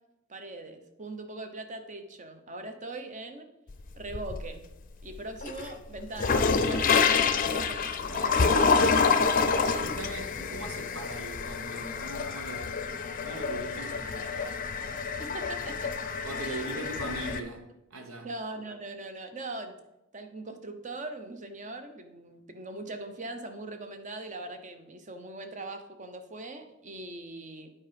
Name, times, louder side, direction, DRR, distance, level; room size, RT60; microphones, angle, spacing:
voice 1, 0.3-3.5 4.0-4.7 5.0-7.1 7.5-8.5 9.7-9.9 15.2-15.9 16.4-16.8 18.2-19.8 20.1-27.7, right 2 dB, 35° right, 0.8 m, -41 dB
sound 1, 3.7-4.6 5.1-17.4, left 5 dB, 40° left, 0.5 m, -27 dB
voice 2, 8.1-14.6 16.2-18.3, right 2 dB, 90° right, 1.3 m, -41 dB
8.6 x 4.7 x 5.1 m
head